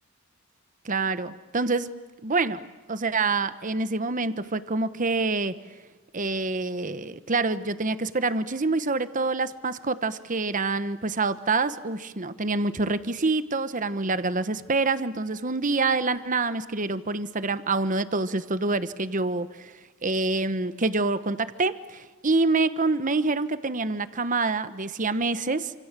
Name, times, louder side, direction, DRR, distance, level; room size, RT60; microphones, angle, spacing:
voice 1, 0.8-1.9 2.2-2.6 2.9-5.6 6.1-19.7 20.0-25.7, right 3 dB, 40° right, 13 dB, 1.1 m, -26 dB
28.0 x 27.0 x 7.5 m, 1.3 s
head